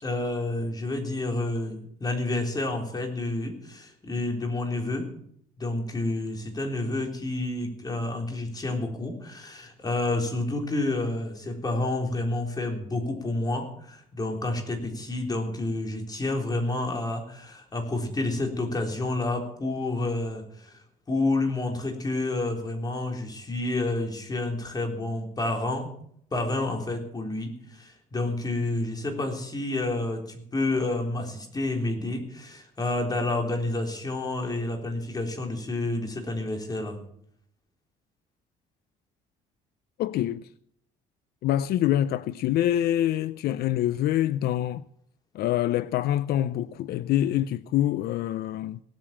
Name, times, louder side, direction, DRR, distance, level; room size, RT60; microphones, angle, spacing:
voice 1, 0.0-5.1 5.6-25.9 26.3-37.0, left 2 dB, 25° left, 3.8 m, -29 dB
voice 2, 40.0-40.5 41.4-44.8 45.3-48.8, left 12 dB, 70° left, 0.5 m, -25 dB
18.0 x 9.0 x 7.3 m
cardioid pair, 110°, 17 cm